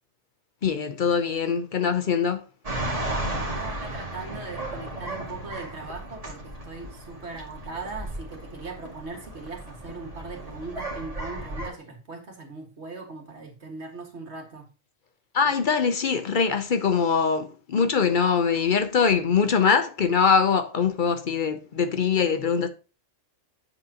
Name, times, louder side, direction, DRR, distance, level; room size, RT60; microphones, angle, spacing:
voice 1, 0.6-2.4 15.3-22.7, left 6 dB, 50° left, 0.7 m, -23 dB
sound 1, 2.6-11.7, right 1 dB, 30° right, 1.8 m, -34 dB
voice 2, 3.3-14.7, right 3 dB, 65° right, 2.0 m, -39 dB
7.6 x 7.6 x 2.8 m
omnidirectional pair, 1.3 m